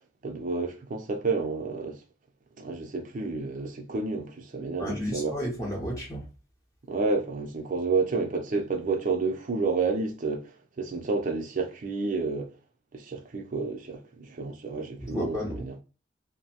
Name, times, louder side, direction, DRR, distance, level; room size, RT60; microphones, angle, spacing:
voice 1, 0.2-2.0 2.6-5.3 6.9-10.5 10.8-12.5 12.9-15.4, right 4 dB, 45° right, 0.5 m, -30 dB
voice 2, 4.8-6.3 15.0-15.7, equal, 20° left, 0.7 m, -32 dB
2.6 x 2.0 x 2.8 m
head